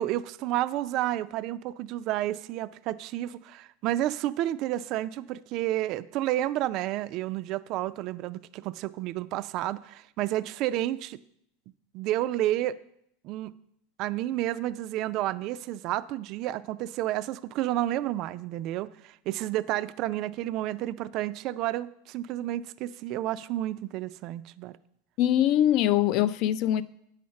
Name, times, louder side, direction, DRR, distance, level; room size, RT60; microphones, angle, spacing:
voice 1, 0.0-11.2 11.9-12.8 13.2-13.5 14.0-24.8, right 14 dB, 45° right, 0.3 m, -30 dB
voice 2, 25.2-26.8, left 11 dB, 50° left, 0.4 m, -23 dB
8.5 x 5.8 x 6.3 m
supercardioid pair, 140°, 0 cm